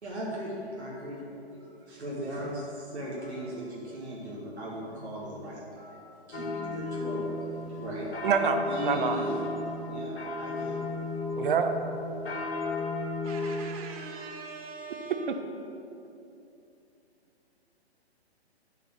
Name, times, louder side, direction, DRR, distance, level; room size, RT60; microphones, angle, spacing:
voice 1, 0.0-8.1 8.7-10.9, equal, 85° right, -6 dB, 2.2 m, -38 dB
sound 1, 6.3-13.6, left 2 dB, 65° left, 2.1 m, -34 dB
voice 2, 8.2-9.2 11.3-11.7, right 6 dB, 50° right, 7 dB, 0.9 m, -26 dB
voice 3, 13.2-15.2, right 4 dB, 35° right, 0 dB, 1.4 m, -42 dB
12.0 x 4.2 x 6.0 m, 2.8 s
hypercardioid pair, 135°, 32 cm